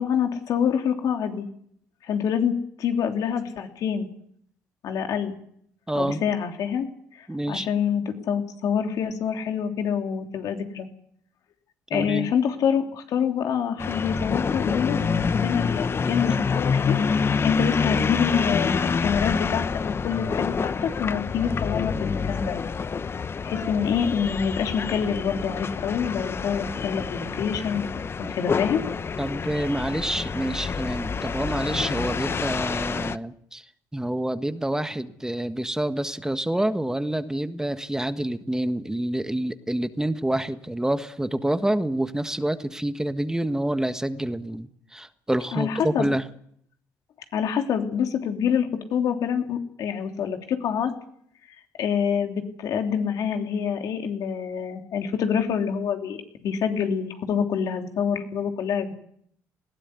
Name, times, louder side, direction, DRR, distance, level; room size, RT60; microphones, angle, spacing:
voice 1, 0.0-1.4 2.0-4.1 4.8-5.3 5.9-6.9 7.2-10.9 11.9-17.0 17.4-22.6 23.4-28.0 28.3-28.8 45.5-46.1 47.3-50.9 51.5-58.9, left 7 dB, 65° left, 5 dB, 3.2 m, -26 dB
voice 2, 5.9-6.2 7.3-7.7 11.9-12.3 29.2-46.3, right 1 dB, 10° right, 10 dB, 1.5 m, -27 dB
sound 1, 13.8-33.2, left 5 dB, 40° left, 0.9 m, -27 dB
20.0 x 16.5 x 9.8 m, 0.69 s
supercardioid pair, 65°, 6 cm